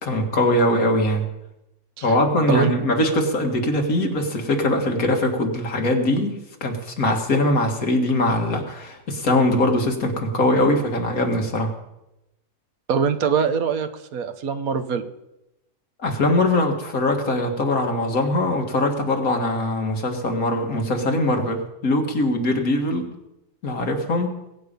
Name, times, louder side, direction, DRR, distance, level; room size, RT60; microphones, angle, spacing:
voice 1, 0.0-1.2 2.0-6.3 6.6-11.7 16.0-23.1 23.6-24.3, left 1 dB, 65° left, 3 dB, 2.2 m, -21 dB
voice 2, 12.9-15.0, right 6 dB, 65° right, 10 dB, 1.4 m, -23 dB
21.5 x 8.7 x 5.3 m, 0.91 s
omnidirectional pair, 1.6 m